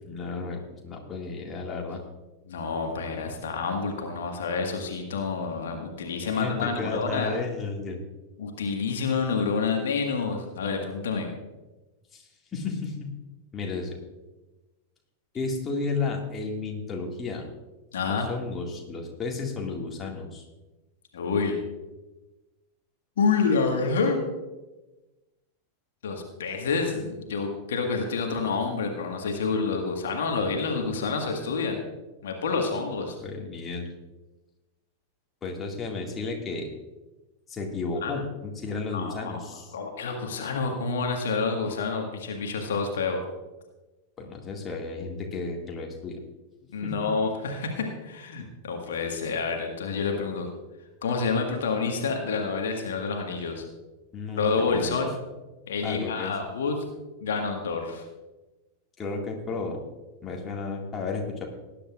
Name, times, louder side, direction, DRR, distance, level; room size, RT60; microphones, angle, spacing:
voice 1, 0.0-2.0 6.2-8.0 12.1-12.2 12.5-13.1 13.5-14.0 15.3-17.5 18.1-20.4 33.2-33.9 35.4-36.7 37.5-39.7 44.2-46.2 46.8-47.1 54.1-55.0 55.8-56.3 59.0-59.8 60.2-61.4, left 4 dB, 20° left, 0 dB, 2.0 m, -33 dB
voice 2, 2.4-7.4 8.4-11.3 17.9-18.3 21.1-21.6 23.2-24.2 26.0-31.8 32.2-33.2 38.0-38.1 38.9-39.4 39.7-43.2 46.7-50.5 51.0-53.6 54.3-55.1 55.7-56.8 57.2-58.0, left 4 dB, 60° left, 3 dB, 1.6 m, -28 dB
19.0 x 10.0 x 2.4 m, 1.1 s
figure-of-eight pair, 90°, 0 cm